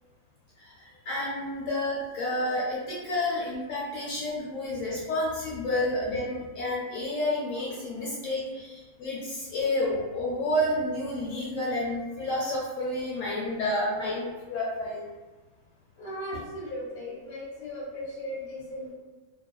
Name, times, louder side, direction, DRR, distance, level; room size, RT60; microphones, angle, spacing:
voice 1, 0.6-15.1, left 1 dB, 70° left, -6 dB, 1.0 m, -30 dB
voice 2, 16.0-18.9, left 1 dB, 45° left, -7 dB, 0.9 m, -37 dB
2.4 x 2.3 x 2.2 m, 1.3 s
omnidirectional pair, 1.4 m